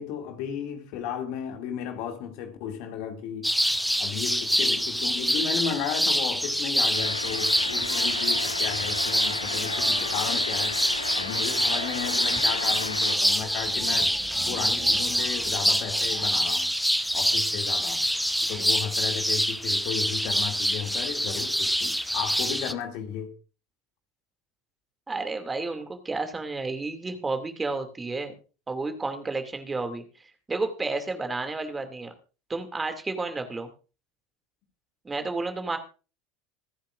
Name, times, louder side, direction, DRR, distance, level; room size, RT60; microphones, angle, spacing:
voice 1, 0.0-3.5 4.0-10.9 11.1-16.7 17.1-18.1 18.5-23.3, left 8 dB, 55° left, 2.5 m, -34 dB
sound 1, 3.4-22.7, equal, ahead, 0.9 m, -26 dB
sound 2, 6.9-13.1, left 5 dB, 80° left, 0.7 m, -35 dB
sound 3, 7.3-16.3, right 7 dB, 35° right, 1.7 m, -44 dB
voice 2, 25.1-28.3 28.7-30.0 30.5-32.1 32.5-33.7 35.0-35.8, right 3 dB, 15° right, 2.5 m, -31 dB
26.0 x 10.0 x 2.5 m
figure-of-eight pair, 70°, 0 cm